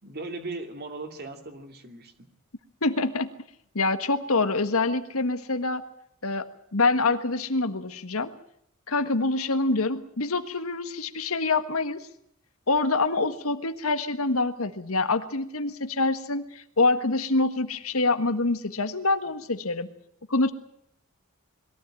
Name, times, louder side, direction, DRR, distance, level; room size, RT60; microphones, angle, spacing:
voice 1, 0.0-2.3, right 3 dB, 45° right, 6 dB, 2.7 m, -38 dB
voice 2, 2.8-3.3 3.7-5.8 6.2-8.3 8.9-12.1 12.7-19.9 20.3-20.5, left 3 dB, 75° left, 9 dB, 1.6 m, -26 dB
22.0 x 15.0 x 9.0 m, 0.73 s
head